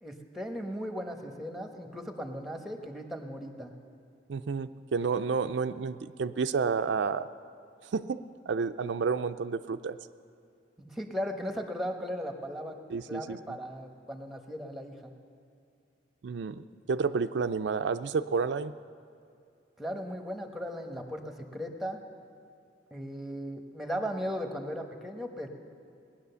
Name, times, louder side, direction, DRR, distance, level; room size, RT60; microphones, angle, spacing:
voice 1, 0.0-3.7 10.8-12.8 13.1-15.1 19.8-22.0 22.9-25.5, equal, ahead, 5 dB, 1.1 m, -37 dB
voice 2, 4.3-7.3 7.9-10.0 12.9-13.4 16.2-18.7, right 5 dB, 80° right, 10 dB, 0.4 m, -30 dB
18.5 x 10.0 x 6.9 m, 2.5 s
head